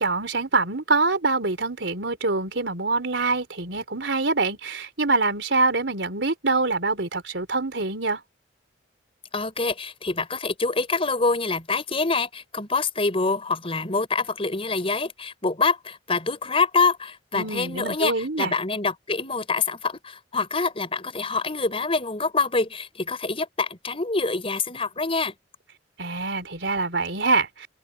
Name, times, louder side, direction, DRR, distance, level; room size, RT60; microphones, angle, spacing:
voice 1, 0.0-8.2 17.3-18.5 26.0-27.7, right 3 dB, 85° right, 3.9 m, -25 dB
voice 2, 9.3-25.3, left 4 dB, 30° left, 4.7 m, -26 dB
open air
head